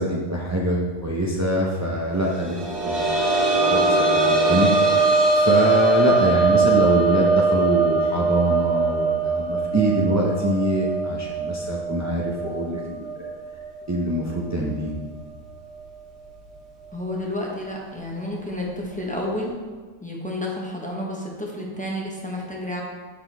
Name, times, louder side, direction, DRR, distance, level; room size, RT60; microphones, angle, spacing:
voice 1, 0.0-2.6 2.8-3.1 3.4-4.0 4.3-5.0 5.4-13.1 13.9-14.9, equal, 25° right, -4 dB, 0.3 m, -24 dB
sound 1, 2.3-13.8 14.1-14.2 15.8-15.9, right 3 dB, 60° right, 1.7 m, -21 dB
voice 2, 16.9-19.6 20.0-22.8, left 1 dB, 5° left, -3 dB, 0.8 m, -30 dB
6.9 x 5.9 x 3.4 m, 1.4 s
omnidirectional pair, 1.4 m